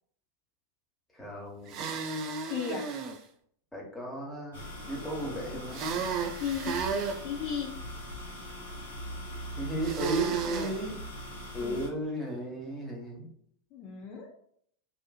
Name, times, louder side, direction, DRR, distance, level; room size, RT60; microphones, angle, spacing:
voice 1, 1.1-1.8 3.7-4.6 4.9-6.0 9.5-11.0 11.5-13.3, right 1 dB, 10° left, -3 dB, 1.0 m, -35 dB
sound 1, 1.7-3.2 5.7-7.2 9.8-10.8, right 5 dB, 35° right, 0.3 m, -33 dB
voice 2, 2.5-2.9 6.4-6.8 7.2-7.7 11.6-11.9 13.7-14.3, left 7 dB, 40° left, 0 dB, 0.4 m, -34 dB
sound 2, 4.5-11.9, equal, 65° left, 0.9 m, -41 dB
2.4 x 2.4 x 2.3 m, 0.65 s
figure-of-eight pair, 90°, 0 cm